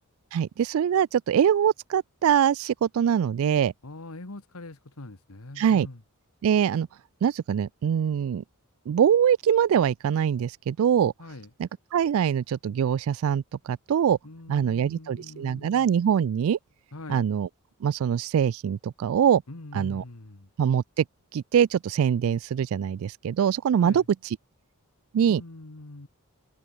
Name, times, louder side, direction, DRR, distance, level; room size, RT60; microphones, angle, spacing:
voice 1, 0.3-3.7 5.6-5.9 6.4-6.9 7.2-8.4 8.9-11.1 11.6-14.2 14.5-16.6 17.1-17.5 17.8-19.4 19.7-20.0 20.6-21.0 21.3-24.4 25.1-25.4, right 8 dB, 70° right, 0.3 m, -23 dB
voice 2, 3.8-6.0 11.2-11.5 14.2-15.9 16.9-17.3 19.5-20.5 23.8-24.0 25.3-26.1, left 2 dB, 75° left, 1.5 m, -43 dB
head